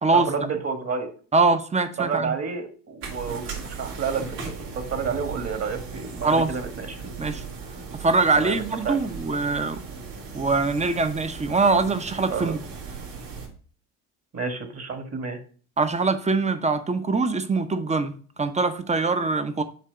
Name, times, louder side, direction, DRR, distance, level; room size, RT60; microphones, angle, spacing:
voice 1, 0.1-1.1 2.0-4.4 4.7-7.1 8.3-9.0 12.3-12.5 14.3-15.4, right 5 dB, 35° right, 1.5 m, -30 dB
voice 2, 1.3-2.4 6.2-6.5 7.2-7.4 7.9-9.8 10.3-12.6 15.8-19.6, right 3 dB, 15° right, 0.8 m, -23 dB
sound 1, 3.0-13.5, right 5 dB, 75° right, 2.8 m, -37 dB
7.5 x 3.0 x 5.6 m
hypercardioid pair, 75°, 44 cm